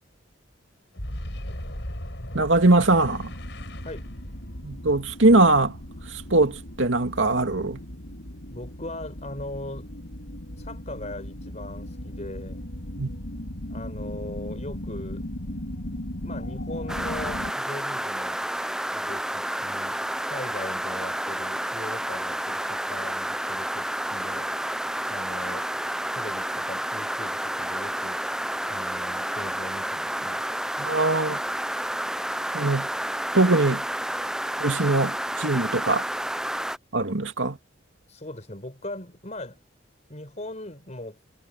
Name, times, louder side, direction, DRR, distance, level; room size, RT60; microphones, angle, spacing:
Boom, 0.9-7.5, equal, 65° left, 6.9 m, -38 dB
voice 1, 2.3-3.3 4.6-5.8 6.1-7.8 13.0-13.1 30.8-31.4 32.5-32.9 33.3-33.8 34.6-36.0 36.9-37.6, right 2 dB, 85° right, 2.3 m, -21 dB
sound 1, 3.0-17.5, left 1 dB, 85° left, 4.3 m, -37 dB
voice 2, 8.5-9.9 10.6-12.6 13.7-15.2 16.2-18.4 18.9-24.5 25.1-25.7 26.1-28.2 28.7-30.4 38.1-39.6 40.1-41.2, left 1 dB, 40° left, 4.7 m, -39 dB
sound 2, 16.9-36.8, right 1 dB, 5° right, 0.5 m, -30 dB
head